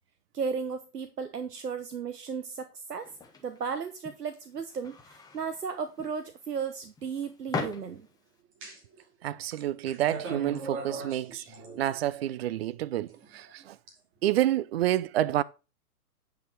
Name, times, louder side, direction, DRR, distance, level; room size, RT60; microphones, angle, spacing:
voice 1, 0.3-3.1 3.4-8.1, right 6 dB, 85° right, 1.1 m, -35 dB
sound 1, 3.0-8.4, left 3 dB, 10° left, 1.2 m, -41 dB
sound 2, 8.6-9.0 9.5-12.2 13.1-13.9, right 3 dB, 25° right, 2.5 m, -40 dB
voice 2, 9.2-11.4 11.8-13.7 14.2-15.4, right 13 dB, 45° right, 0.6 m, -28 dB
9.2 x 5.7 x 4.5 m
hypercardioid pair, 125°, 46 cm